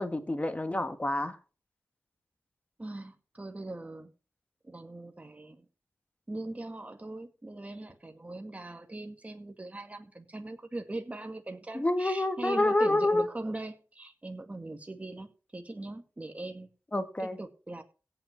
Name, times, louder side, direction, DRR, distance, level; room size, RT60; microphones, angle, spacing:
voice 1, 0.0-1.4 11.7-13.3 16.9-17.4, left 1 dB, 25° left, 1.8 m, -28 dB
voice 2, 2.8-4.1 4.6-5.6 6.3-16.7 17.2-17.8, right 2 dB, 25° right, 2.1 m, -40 dB
16.5 x 5.9 x 5.9 m
wide cardioid pair, 95°, 6 cm